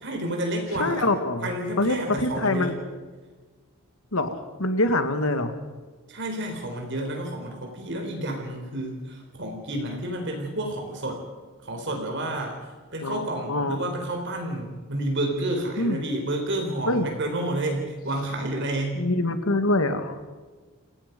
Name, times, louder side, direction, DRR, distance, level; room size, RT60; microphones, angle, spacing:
voice 1, 0.0-1.1 1.4-2.8 6.1-11.2 11.6-12.6 12.9-19.0, right 1 dB, 55° right, 2 dB, 4.2 m, -30 dB
voice 2, 0.7-2.7 4.1-5.5 13.0-13.9 15.8-16.0 16.9-17.1 19.0-20.2, left 2 dB, 70° left, 8 dB, 2.1 m, -25 dB
28.5 x 17.5 x 5.4 m, 1.3 s
head